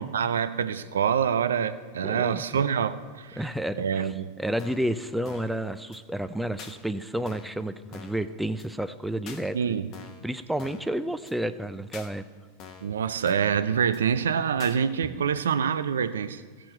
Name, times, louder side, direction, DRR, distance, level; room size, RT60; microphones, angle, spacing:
voice 1, 0.0-3.4 3.8-4.4 9.5-9.9 12.8-16.4, right 7 dB, 75° right, 12 dB, 0.5 m, -26 dB
voice 2, 2.0-2.6 3.4-9.8 10.2-12.2, right 1 dB, 5° right, 11 dB, 0.5 m, -31 dB
sound 1, 4.6-4.9 5.2-5.6 5.9-6.0 6.6-6.7 7.3-7.6 7.9-8.2 8.6-8.7 9.3-9.4 9.9-10.3 10.6-10.9 11.3-11.4 11.9-12.1 12.6-12.9 13.3-13.6 13.9-14.0 14.6-14.8, left 6 dB, 45° left, 1.1 m, -45 dB
16.0 x 6.2 x 4.4 m, 1.5 s
figure-of-eight pair, 90°, 0 cm